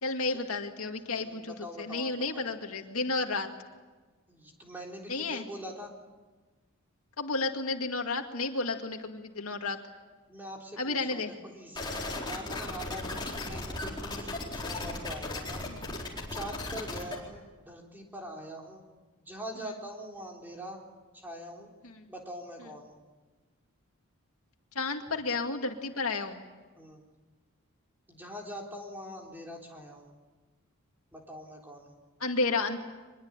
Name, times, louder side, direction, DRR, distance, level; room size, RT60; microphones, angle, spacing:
voice 1, 0.0-3.5 5.1-5.5 7.2-9.8 10.8-11.3 15.7-16.1 21.8-22.1 24.7-26.4 32.2-32.8, left 3 dB, 80° left, 4 dB, 2.1 m, -32 dB
voice 2, 1.2-2.5 4.3-5.9 10.3-11.9 12.3-15.6 16.3-18.8 19.2-20.8 21.1-21.7 22.1-23.0 26.8-27.0 28.1-30.1 31.1-31.9, equal, 10° right, 0 dB, 3.8 m, -43 dB
sound 1, 11.8-17.2, left 2 dB, 20° left, 4.2 m, -36 dB
24.5 x 21.5 x 8.9 m, 1.3 s
head